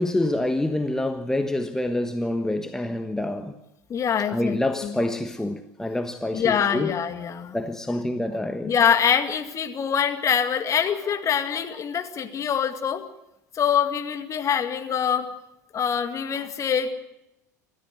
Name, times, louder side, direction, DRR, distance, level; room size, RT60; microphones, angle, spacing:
voice 1, 0.0-3.6 4.3-6.9 7.5-8.7, left 1 dB, 5° left, 1.3 m, -27 dB
voice 2, 3.9-5.0 6.3-7.6 8.6-13.0 13.5-15.3 15.7-16.9, left 8 dB, 30° left, 2.2 m, -24 dB
28.0 x 13.5 x 7.9 m
figure-of-eight pair, 75°, 10 cm